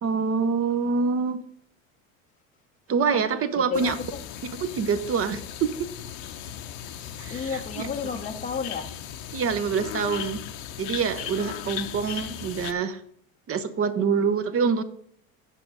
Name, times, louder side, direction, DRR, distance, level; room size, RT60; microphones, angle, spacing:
voice 1, 0.0-1.4 2.9-4.0 4.6-5.9 7.2-7.6 9.3-10.4 10.8-13.0 13.5-14.8, right 5 dB, 35° right, 0.8 m, -25 dB
voice 2, 3.6-4.2 6.9-9.0 11.8-12.0, left 5 dB, 20° left, 0.7 m, -32 dB
sound 1, 3.7-12.7, left 10 dB, 65° left, 0.9 m, -37 dB
7.6 x 5.1 x 6.3 m
supercardioid pair, 100°, 41 cm